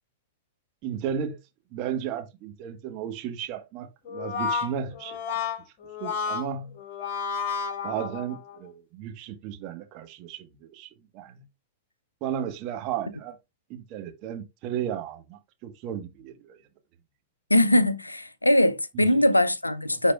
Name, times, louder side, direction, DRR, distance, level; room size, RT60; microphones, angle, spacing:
voice 1, 0.8-1.4 1.7-5.2 6.0-6.7 7.8-11.4 12.2-13.4 13.7-16.6 18.9-19.2, right 9 dB, 40° right, 1.4 m, -34 dB
Brass instrument, 4.1-8.6, left 6 dB, 45° left, 1.5 m, -31 dB
voice 2, 17.5-20.1, left 1 dB, 85° left, 0.6 m, -21 dB
11.5 x 4.1 x 2.4 m
figure-of-eight pair, 90°, 0 cm